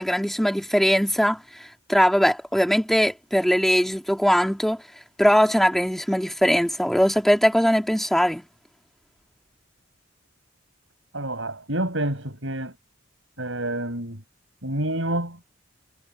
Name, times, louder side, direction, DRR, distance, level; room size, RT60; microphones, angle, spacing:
voice 1, 0.0-1.4 1.9-4.8 5.2-8.4, equal, ahead, 2.1 m, -20 dB
voice 2, 11.1-12.7 13.4-14.2 14.6-15.4, right 1 dB, 65° right, 8.0 m, -28 dB
head